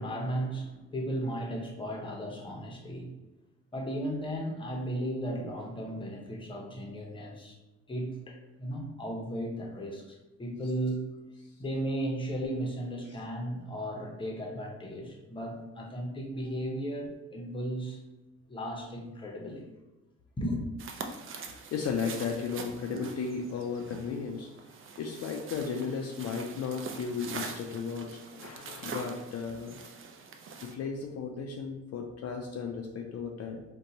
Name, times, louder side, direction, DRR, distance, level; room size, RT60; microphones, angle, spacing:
voice 1, 0.0-3.1 3.7-7.6 7.9-11.1 11.6-18.0 18.5-19.6 20.4-20.7, right 1 dB, 15° left, 0 dB, 0.7 m, -35 dB
sound 1, 20.8-30.7, right 5 dB, 45° right, 0.4 m, -44 dB
voice 2, 21.3-24.5 25.0-29.8 30.6-33.6, left 5 dB, 55° left, 2 dB, 0.4 m, -35 dB
2.7 x 2.2 x 3.9 m, 1.0 s
cardioid pair, 90°, 30 cm